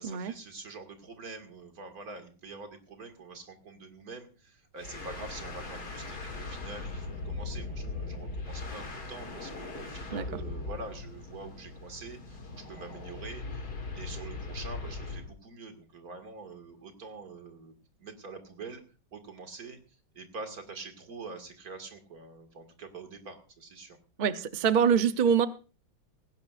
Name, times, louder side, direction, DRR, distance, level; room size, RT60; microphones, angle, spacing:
voice 1, 0.0-18.8 19.1-19.8 20.1-24.0, right 3 dB, 50° right, 5 dB, 2.5 m, -45 dB
sound 1, 4.8-15.3, left 3 dB, 55° left, 2.9 m, -39 dB
voice 2, 24.2-25.5, right 7 dB, 80° right, 10 dB, 0.4 m, -24 dB
18.0 x 17.0 x 2.5 m, 0.34 s
omnidirectional pair, 2.1 m